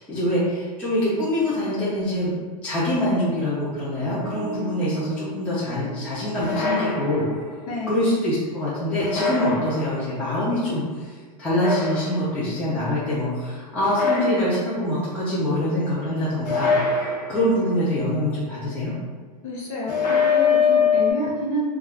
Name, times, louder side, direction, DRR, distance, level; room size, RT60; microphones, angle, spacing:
voice 1, 0.0-2.3 2.6-7.2 7.9-11.1 11.4-16.8 17.3-18.9, left 1 dB, 5° left, -9 dB, 0.4 m, -24 dB
Bass guitar, 4.2-11.4, equal, 85° right, 0.7 m, -41 dB
sound 1, 6.4-7.6 9.0-10.2 11.5-12.5 13.8-15.0 16.4-17.8 19.9-21.1, left 5 dB, 75° left, 0.8 m, -23 dB
voice 2, 7.7-8.0 19.4-21.7, left 1 dB, 35° left, -4 dB, 0.7 m, -28 dB
2.2 x 2.2 x 3.4 m, 1.4 s
supercardioid pair, 150°, 21 cm